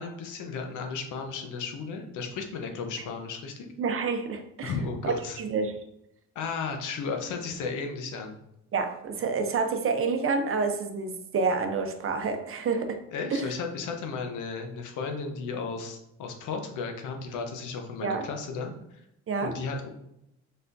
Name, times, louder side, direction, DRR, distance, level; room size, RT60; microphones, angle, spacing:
voice 1, 0.0-3.7 4.6-5.4 6.3-8.4 13.1-19.0 19.4-19.9, left 4 dB, 80° left, 4 dB, 0.8 m, -34 dB
voice 2, 3.8-4.7 5.0-5.8 8.7-13.0 13.3-13.5 18.0-18.3 19.3-19.6, right 4 dB, 45° right, 6 dB, 0.6 m, -28 dB
4.2 x 3.3 x 2.6 m, 0.81 s
cardioid pair, 90°, 30 cm